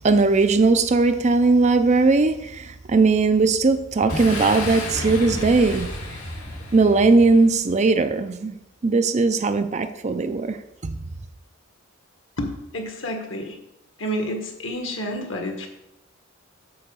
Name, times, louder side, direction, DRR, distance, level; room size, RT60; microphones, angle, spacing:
voice 1, 0.0-5.9 6.7-8.6 8.8-10.6 10.8-11.0, right 3 dB, 35° right, 0.5 m, -19 dB
Boom, 4.1-7.7, left 1 dB, 80° left, 2.6 m, -31 dB
voice 2, 12.4-13.6 14.0-15.7, equal, 65° left, 1.5 m, -29 dB
8.7 x 3.9 x 6.8 m
head